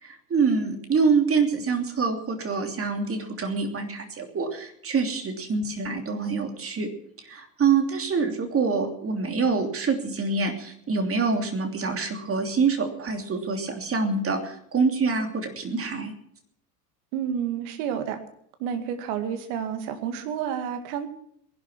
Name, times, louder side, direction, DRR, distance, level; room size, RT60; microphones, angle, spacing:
voice 1, 0.0-6.9 7.2-16.1, right 4 dB, 30° right, 5 dB, 3.0 m, -26 dB
voice 2, 17.1-18.2 18.6-21.1, right 8 dB, 60° right, 8 dB, 2.2 m, -30 dB
19.5 x 11.5 x 6.1 m, 0.69 s
figure-of-eight pair, 75°, 46 cm